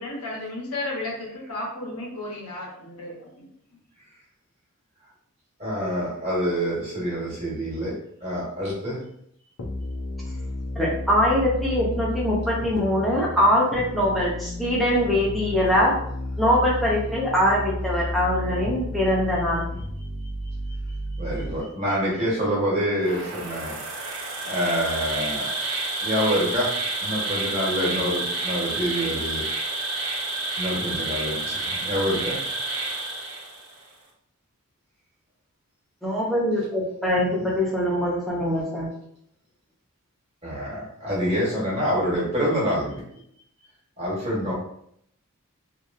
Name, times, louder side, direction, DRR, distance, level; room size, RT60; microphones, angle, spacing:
voice 1, 0.0-3.5, left 2 dB, 85° left, -3 dB, 0.9 m, -33 dB
voice 2, 5.6-9.0 20.7-23.8 24.4-25.5 26.0-26.7 27.0-29.4 30.6-32.4 40.4-43.0 44.0-44.5, equal, 25° right, -6 dB, 1.2 m, -26 dB
sound 1, 9.6-21.6, left 1 dB, 60° left, 0.5 m, -32 dB
voice 3, 10.8-15.9 16.4-19.6 36.0-38.9, equal, ahead, -5 dB, 0.6 m, -22 dB
Insect, 23.0-33.8, right 2 dB, 75° right, 0.6 m, -29 dB
2.8 x 2.4 x 2.5 m, 0.70 s
head